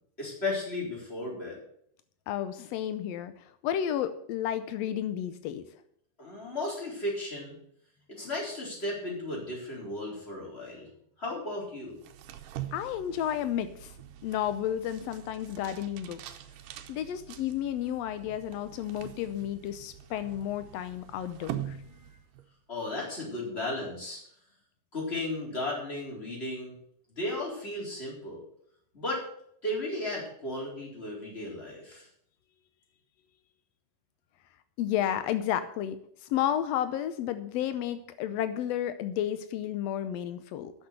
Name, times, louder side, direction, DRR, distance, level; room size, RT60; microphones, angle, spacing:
voice 1, 0.2-1.6 6.2-7.5 8.1-10.9 11.2-12.0 22.7-24.2 24.9-26.7 27.2-28.4 28.9-29.2 29.6-32.1, left 2 dB, 20° left, -3 dB, 4.1 m, -35 dB
voice 2, 2.3-5.6 12.7-13.9 14.2-16.2 16.9-21.8 34.8-40.7, left 10 dB, 90° left, 11 dB, 1.4 m, -32 dB
sound 1, 12.0-22.5, right 11 dB, 85° right, 2.4 m, -44 dB
10.0 x 6.8 x 8.0 m, 0.68 s
omnidirectional pair, 3.7 m